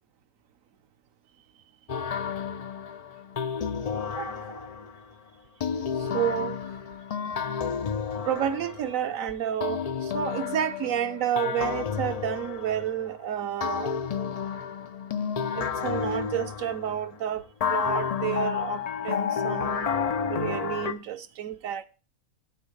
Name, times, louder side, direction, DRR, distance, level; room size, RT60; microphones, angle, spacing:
sound 1, 1.9-5.0 5.6-9.1 9.6-13.1 13.6-17.1 17.6-20.9, left 6 dB, 85° left, 0.3 m, -31 dB
voice 1, 4.1-4.7 6.0-6.6 8.2-13.9 15.5-17.4 17.7-20.0 20.3-21.9, right 10 dB, 70° right, 1.1 m, -30 dB
9.9 x 9.0 x 3.2 m
omnidirectional pair, 1.5 m